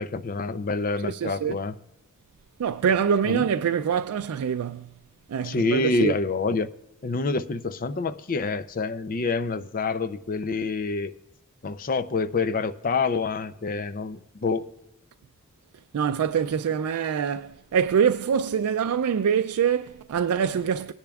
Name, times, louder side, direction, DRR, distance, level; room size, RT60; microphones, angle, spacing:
voice 1, 0.0-1.8 3.3-3.4 5.4-6.7 7.0-11.1 11.6-14.7, left 3 dB, 40° left, 0.5 m, -27 dB
voice 2, 1.0-1.6 2.6-4.9 5.3-6.2 15.9-20.9, right 7 dB, 90° right, 0.4 m, -25 dB
19.0 x 10.5 x 2.3 m
head